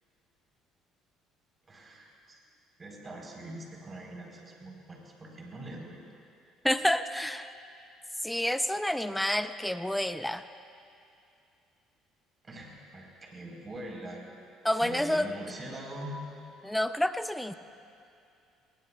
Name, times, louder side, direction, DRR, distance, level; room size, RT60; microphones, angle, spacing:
voice 1, 1.7-2.4 2.8-6.0 6.4-6.8 12.4-14.2 14.8-16.2, right 1 dB, 30° right, -1 dB, 3.8 m, -43 dB
voice 2, 6.6-7.5 8.2-10.4 14.6-15.3 16.6-17.5, left 1 dB, 5° left, 11 dB, 0.5 m, -29 dB
20.0 x 19.0 x 2.3 m, 2.5 s
supercardioid pair, 70°, 0 cm